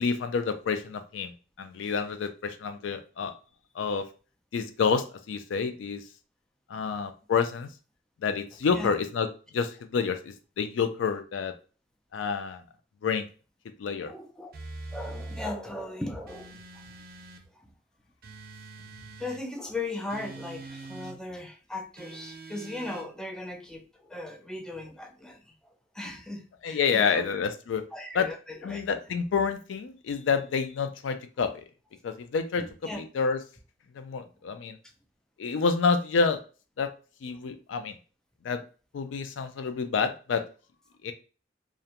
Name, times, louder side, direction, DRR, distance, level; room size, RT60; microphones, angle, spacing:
voice 1, 0.0-1.3 1.6-3.3 3.8-4.0 4.5-6.0 6.7-7.7 8.2-9.3 9.5-11.5 12.1-12.6 13.0-13.2 13.8-14.1 26.6-27.8 28.1-28.3 28.6-31.6 32.0-32.6 33.0-33.4 34.0-34.8 35.4-36.4 36.8-36.9 37.2-37.9 38.4-38.6 38.9-40.4 41.0-41.1, left 5 dB, 90° left, 8 dB, 0.4 m, -28 dB
voice 2, 14.0-14.5 14.9-16.8 19.2-25.5 25.9-27.4 27.9-28.8 32.6-33.0, left 2 dB, 5° left, 3 dB, 0.3 m, -38 dB
sound 1, 14.5-15.5 16.3-17.5 18.2-19.4 20.1-21.2 22.0-23.1, right 2 dB, 55° right, 0.5 m, -43 dB
2.4 x 2.1 x 2.8 m, 0.36 s
head